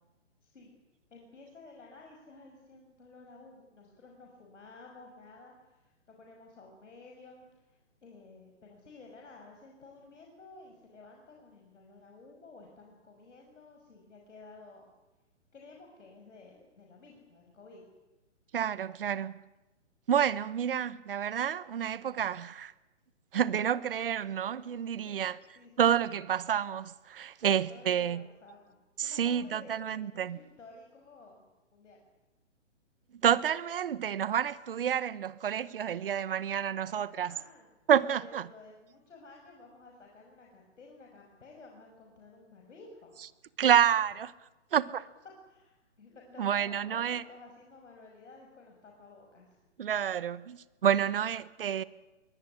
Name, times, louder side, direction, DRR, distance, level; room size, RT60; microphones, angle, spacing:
voice 1, 0.4-0.7 1.1-14.9 15.5-17.9 25.1-25.3 25.5-25.9 27.7-31.4 31.7-32.1 36.8-37.7 38.1-43.2 45.5-49.6, left 3 dB, 80° left, 5.9 m, -53 dB
voice 2, 18.5-19.4 20.1-22.7 23.3-25.4 25.8-28.2 29.0-30.4 33.1-37.3 37.9-38.5 43.6-44.3 44.7-45.1 46.4-47.2 49.8-51.8, right 9 dB, 50° right, 1.0 m, -29 dB
22.5 x 19.0 x 9.9 m
hypercardioid pair, 170°, 36 cm